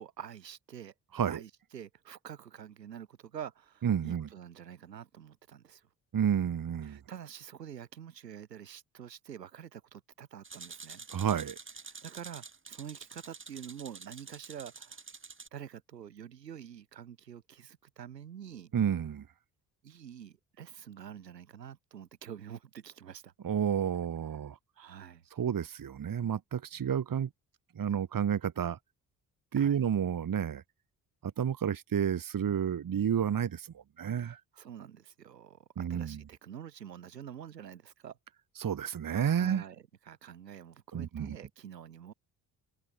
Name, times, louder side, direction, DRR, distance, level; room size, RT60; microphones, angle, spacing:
voice 1, 0.0-0.9 1.3-5.9 6.8-11.0 12.0-15.0 15.5-18.7 19.8-23.3 24.8-25.2 26.7-26.9 27.9-28.0 29.5-29.8 34.2-38.2 39.3-42.1, right 9 dB, 85° right, 4.1 m, -47 dB
voice 2, 3.8-4.3 6.1-7.0 11.1-11.6 18.7-19.3 23.4-24.6 25.3-27.3 27.8-28.8 29.5-30.6 31.2-34.4 35.8-36.2 38.6-39.6 40.9-41.4, right 8 dB, 45° right, 2.5 m, -30 dB
sound 1, 10.4-15.5, right 4 dB, 25° right, 3.1 m, -48 dB
figure-of-eight pair, 40°, 48 cm